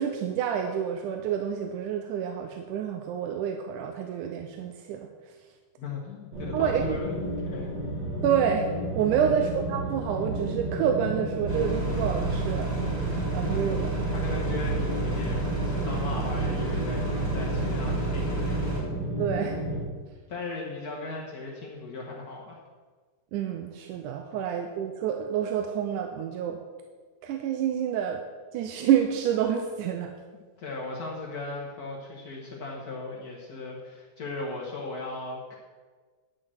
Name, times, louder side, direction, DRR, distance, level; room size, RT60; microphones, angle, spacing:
voice 1, 0.0-5.1 6.5-7.0 8.2-8.7 9.0-12.7 13.3-14.0 19.2-19.5 23.3-26.6 27.2-28.2 28.5-30.1, right 8 dB, 85° right, 5 dB, 2.2 m, -28 dB
voice 2, 5.8-7.1 7.4-7.7 9.1-9.3 14.1-18.7 20.3-22.6 30.6-35.6, left 3 dB, 70° left, -2 dB, 0.9 m, -37 dB
sound 1, 6.3-19.8, right 1 dB, 55° right, 4.3 m, -32 dB
sound 2, 11.5-18.8, right 3 dB, 10° right, 3.6 m, -30 dB
10.5 x 6.4 x 6.3 m, 1.4 s
omnidirectional pair, 3.6 m